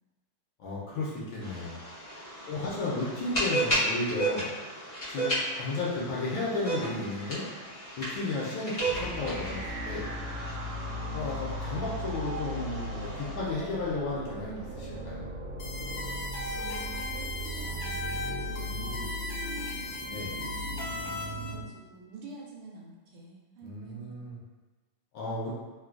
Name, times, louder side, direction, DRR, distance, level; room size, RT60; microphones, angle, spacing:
voice 1, 0.6-1.8 2.5-4.5 5.1-7.4 8.0-10.1 11.1-15.2 18.7-19.0 20.1-20.4 23.6-24.4 25.1-25.5, left 3 dB, 75° left, -5 dB, 1.3 m, -34 dB
sound 1, 1.4-13.4, right 1 dB, 50° left, 0.5 m, -34 dB
voice 2, 2.3-2.7 16.5-19.2 19.4-19.7 20.3-24.1, right 3 dB, 85° right, -3 dB, 1.6 m, -48 dB
sound 2, 8.9-21.7, equal, 70° right, 1.3 m, -37 dB
sound 3, 15.6-21.5, left 2 dB, 90° left, 0.8 m, -37 dB
3.8 x 2.2 x 2.3 m, 1.2 s
omnidirectional pair, 2.4 m